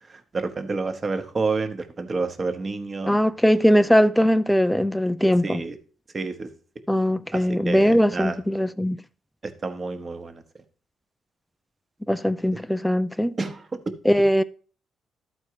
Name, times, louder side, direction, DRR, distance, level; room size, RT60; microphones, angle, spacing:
voice 1, 0.0-3.3 5.4-5.8 6.1-6.5 7.3-8.4 9.4-10.4 12.5-12.6 13.4-13.8, right 3 dB, 30° right, 1.0 m, -29 dB
voice 2, 3.1-5.6 6.9-9.0 12.1-13.3 14.1-14.4, equal, ahead, 0.3 m, -20 dB
12.5 x 4.5 x 4.7 m
cardioid pair, 130°, 0 cm